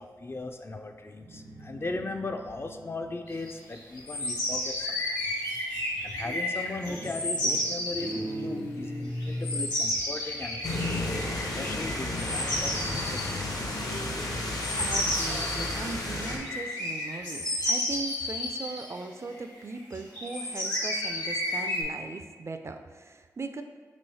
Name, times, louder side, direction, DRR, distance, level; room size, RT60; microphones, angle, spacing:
voice 1, 0.0-5.2 5.6-10.9 11.6-13.5, left 2 dB, 35° left, 5 dB, 0.3 m, -38 dB
Guitar, 1.1-4.7 6.2-6.6 6.9-9.8, equal, 85° right, 0.9 m, -38 dB
sound 1, 3.5-8.2 9.2-19.0 19.3-19.4 19.7-21.8, left 1 dB, 75° left, 1.2 m, -32 dB
sound 2, 10.6-16.4, left 2 dB, 60° left, 0.7 m, -32 dB
voice 2, 14.5-23.6, right 3 dB, 40° right, 7 dB, 0.3 m, -39 dB
3.1 x 3.0 x 4.1 m, 1.5 s
cardioid pair, 40°, 7 cm